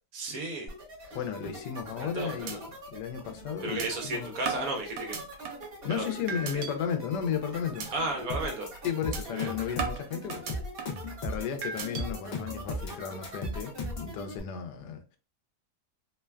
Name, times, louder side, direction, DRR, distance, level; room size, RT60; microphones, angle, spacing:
voice 1, 0.1-0.7 1.0-1.2 2.0-2.6 3.6-5.2 5.9-6.1 6.5-6.6 7.9-8.7 9.2-9.5, right 2 dB, 65° right, 1.0 m, -34 dB
sound 1, 0.7-14.4, right 1 dB, 40° right, 1.3 m, -44 dB
voice 2, 1.1-2.6 2.9-4.3 5.8-7.9 8.8-10.5 11.2-13.7 14.0-15.2, left 8 dB, 85° left, 1.2 m, -34 dB
sound 2, 1.8-2.1 2.5-2.6 3.0-3.1 3.8-3.9 4.5-5.7 6.3-6.7 7.1-7.4 7.8-7.9 8.3-8.5 9.1-9.2 9.8-11.1 11.6-12.0, right 6 dB, 85° right, 1.2 m, -36 dB
sound 3, 8.3-14.1, left 1 dB, 65° left, 0.6 m, -35 dB
3.1 x 2.2 x 2.2 m
omnidirectional pair, 1.8 m